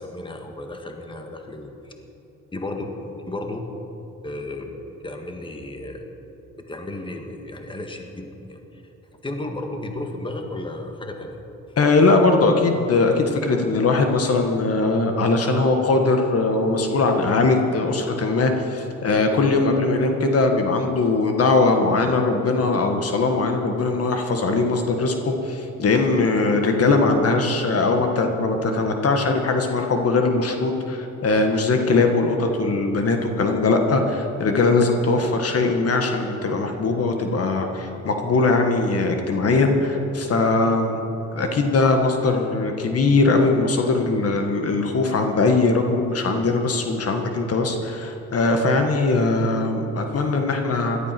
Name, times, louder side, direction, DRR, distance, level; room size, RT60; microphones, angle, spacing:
voice 1, 0.0-1.9 2.5-3.7 4.2-4.8 5.0-6.1 6.6-8.8 9.2-11.4, left 2 dB, 15° left, 4 dB, 1.8 m, -33 dB
voice 2, 11.8-41.0 41.3-51.0, left 3 dB, 50° left, 4 dB, 1.7 m, -20 dB
17.0 x 12.0 x 6.1 m, 2.9 s
cardioid pair, 90°, 30 cm